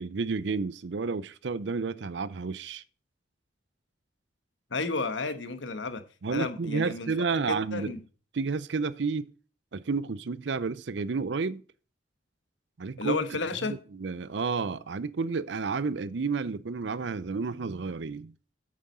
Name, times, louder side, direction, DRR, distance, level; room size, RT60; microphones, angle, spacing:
voice 1, 0.0-2.8 6.2-7.9 8.3-9.3 9.7-11.6 12.8-13.2 13.7-18.3, right 4 dB, 75° right, 0.5 m, -31 dB
voice 2, 4.7-6.0 6.3-7.1 7.5-8.0 13.0-13.8, left 3 dB, 85° left, 1.2 m, -32 dB
8.7 x 7.4 x 5.4 m
head